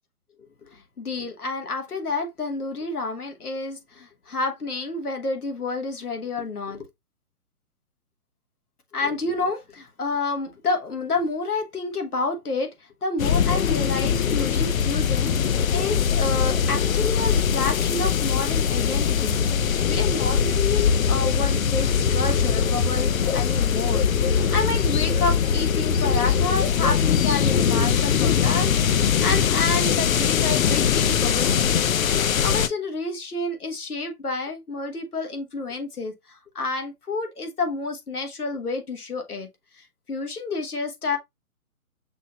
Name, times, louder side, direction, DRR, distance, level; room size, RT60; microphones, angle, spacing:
voice 1, 0.6-6.9 8.9-12.7 13.0-39.5 39.8-41.2, left 3 dB, 85° left, 1.3 m, -29 dB
sound 1, 13.2-32.7, left 7 dB, 65° left, 0.6 m, -21 dB
6.1 x 2.9 x 2.3 m
figure-of-eight pair, 130°, 44 cm